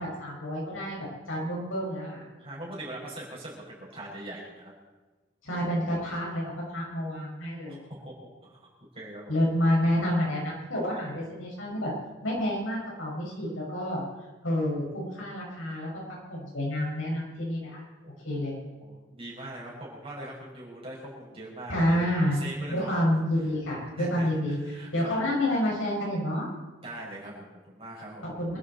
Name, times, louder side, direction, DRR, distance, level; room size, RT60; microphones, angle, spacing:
voice 1, 0.0-2.2 5.4-7.8 9.3-11.9 12.2-14.0 14.4-15.9 16.3-17.8 18.2-18.6 21.7-22.4 22.7-26.5 28.2-28.6, equal, 85° left, -3 dB, 6.3 m, -29 dB
voice 2, 2.3-4.7 7.6-8.1 8.4-8.7 8.9-9.3 10.9-11.1 18.0-18.4 18.8-22.1 22.3-22.9 24.0-24.3 24.6-25.2 26.8-28.3, right 1 dB, 30° right, -6 dB, 6.1 m, -41 dB
26.0 x 11.5 x 4.4 m, 1.2 s
head